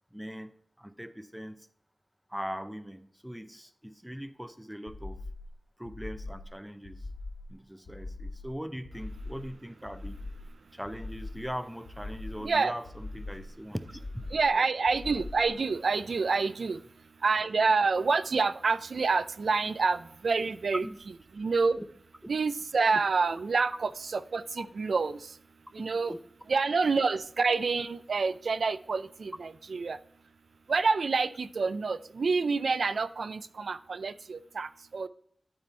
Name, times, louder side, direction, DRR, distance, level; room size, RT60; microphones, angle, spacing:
voice 1, 0.1-1.7 2.3-5.2 5.8-7.1 7.5-10.2 10.7-14.7 20.8-21.0 21.8-21.9 24.6-24.7 25.8-26.2, equal, 5° right, 11 dB, 0.5 m, -41 dB
sound 1, 4.9-5.5 5.8-6.5 6.8-7.5 7.9-8.5 8.8-9.5 9.8-10.5 10.8-11.5 11.9-12.5 12.9-13.5 13.9-14.5 14.9-15.5, left 2 dB, 90° left, 1.4 m, -41 dB
voice 2, 12.4-12.7 14.3-20.8 21.3-21.8 22.3-25.4 25.7-26.1 26.5-30.0 30.7-35.1, right 4 dB, 80° right, 13 dB, 0.3 m, -28 dB
12.0 x 4.2 x 4.4 m, 0.66 s
wide cardioid pair, 100°, 0 cm